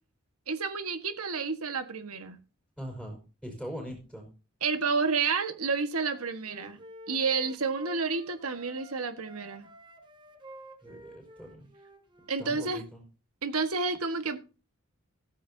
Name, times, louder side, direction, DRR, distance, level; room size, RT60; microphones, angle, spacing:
voice 1, 0.5-2.4 4.6-6.8 7.1-9.7 12.3-12.8 13.4-14.4, right 4 dB, 90° right, 1.6 m, -30 dB
voice 2, 2.8-4.3 10.8-11.7 12.4-13.0, equal, 5° right, 4.8 m, -41 dB
Wind instrument woodwind instrument, 6.1-9.0 9.2-12.7, right 1 dB, 20° right, 1.4 m, -50 dB
14.5 x 14.0 x 2.8 m
head